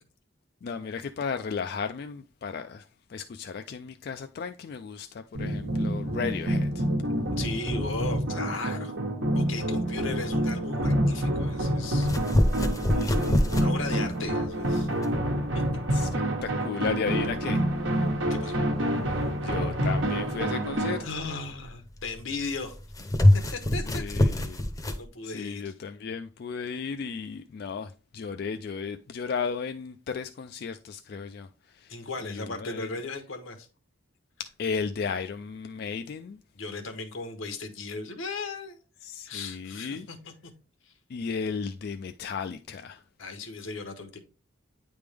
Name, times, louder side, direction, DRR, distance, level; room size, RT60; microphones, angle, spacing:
voice 1, 0.6-6.8 15.9-17.6 19.4-21.0 23.8-24.6 25.2-31.9 32.2-32.9 34.4-36.4 39.0-40.1 41.1-43.0, left 5 dB, 50° left, 0.3 m, -34 dB
sound 1, 5.3-21.0, right 1 dB, 75° right, 1.2 m, -28 dB
voice 2, 7.4-8.9 9.3-12.1 12.7-14.9 15.5-15.6 18.3-18.6 21.0-22.8 23.3-24.0 24.3-24.4 24.9-25.7 31.9-33.7 36.5-38.8 39.3-40.3 40.8-40.9 43.2-44.2, left 3 dB, 85° left, 1.1 m, -37 dB
sound 2, 12.0-25.0, left 1 dB, 15° left, 0.7 m, -27 dB
9.2 x 3.5 x 3.4 m
head